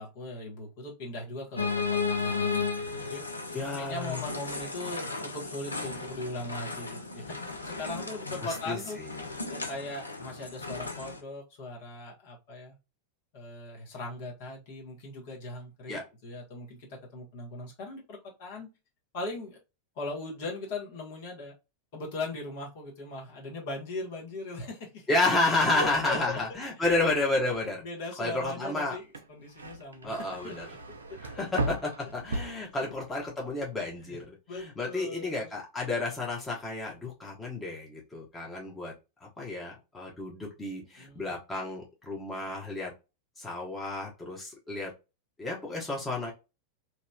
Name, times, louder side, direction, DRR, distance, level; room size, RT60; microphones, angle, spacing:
voice 1, 0.0-3.2 3.5-9.0 9.5-12.8 13.3-18.7 19.1-19.6 19.9-21.5 21.9-25.1 25.7-26.4 26.8-27.0 27.4-27.5 27.8-30.2 30.4-30.8 34.0-34.2 34.5-35.5 41.0-41.3, left 2 dB, 50° left, -2 dB, 1.3 m, -39 dB
sound 1, 1.6-11.2, left 4 dB, 80° left, 0.5 m, -34 dB
voice 2, 3.5-4.2 8.7-9.1 15.9-16.0 25.1-27.8 28.2-29.0 30.0-30.6 31.2-38.9 39.4-42.9 43.4-44.9 45.4-46.3, left 2 dB, 15° left, -3 dB, 1.2 m, -31 dB
sound 2, 29.0-33.3 33.6-34.2, right 1 dB, 70° right, 0.4 m, -37 dB
2.9 x 2.8 x 2.3 m, 0.27 s
figure-of-eight pair, 90°, 0 cm